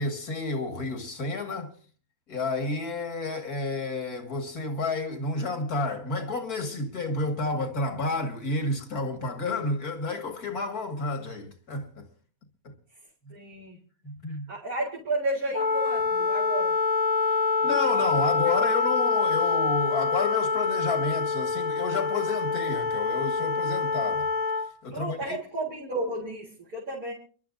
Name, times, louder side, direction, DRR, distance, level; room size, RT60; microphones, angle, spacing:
voice 1, 0.0-1.7 2.3-12.1 12.6-12.7 14.0-14.5 17.6-24.3 24.8-25.4, left 3 dB, 90° left, 2.7 m, -30 dB
voice 2, 13.3-13.8 14.5-16.8 24.9-27.1, right 2 dB, 80° right, 4.4 m, -32 dB
Wind instrument woodwind instrument, 15.5-24.7, left 4 dB, 70° left, 1.4 m, -26 dB
29.5 x 12.0 x 2.7 m
omnidirectional pair, 1.6 m